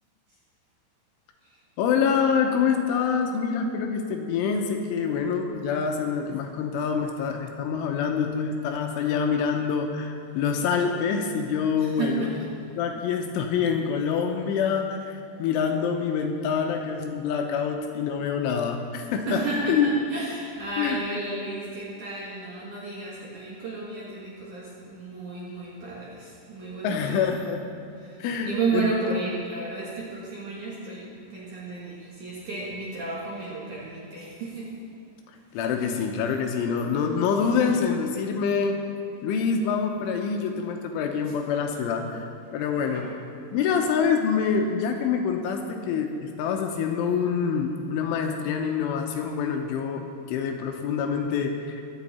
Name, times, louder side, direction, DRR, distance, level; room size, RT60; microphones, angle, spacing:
voice 1, 1.8-12.3 12.8-19.4 19.7-19.9 20.8-21.0 26.8-27.7 28.2-28.9 35.5-38.8 39.2-42.3 42.5-43.0 43.5-50.0 50.3-51.8, left 6 dB, 80° left, 3 dB, 3.2 m, -26 dB
voice 2, 11.8-12.5 19.3-27.2 28.0-34.8 42.8-43.2, right 3 dB, 55° right, -6 dB, 2.4 m, -32 dB
23.0 x 8.3 x 4.3 m, 2.5 s
omnidirectional pair, 5.7 m